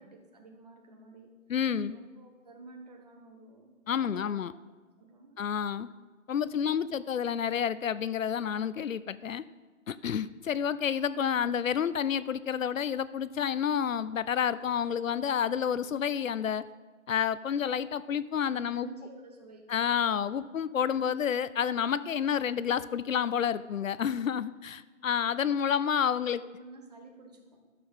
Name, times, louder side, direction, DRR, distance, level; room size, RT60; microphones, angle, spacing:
voice 1, 0.0-1.4 1.9-4.4 5.0-5.4 17.4-17.5 18.5-19.7 26.1-27.7, right 3 dB, 30° right, 3 dB, 1.3 m, -51 dB
voice 2, 1.5-2.0 3.9-4.5 5.4-5.9 6.3-9.4 9.9-16.6 17.1-18.9 19.7-26.4, left 8 dB, 75° left, 16 dB, 0.6 m, -29 dB
12.5 x 6.8 x 5.6 m, 1.4 s
hypercardioid pair, 165°, 40 cm